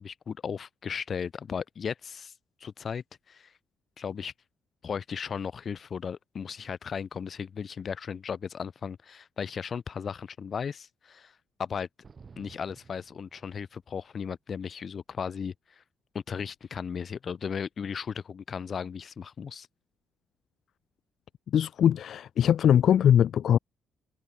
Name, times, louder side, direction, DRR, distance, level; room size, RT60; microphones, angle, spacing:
voice 1, 0.0-2.3 2.6-3.5 4.0-4.3 4.8-11.3 11.6-11.9 12.4-15.8 16.1-19.7, left 6 dB, 50° left, 3.4 m, -36 dB
sound 1, 12.0-14.0, right 5 dB, 35° right, 7.3 m, -53 dB
voice 2, 21.5-23.6, left 9 dB, 65° left, 1.3 m, -21 dB
cardioid pair, 90°, 0 cm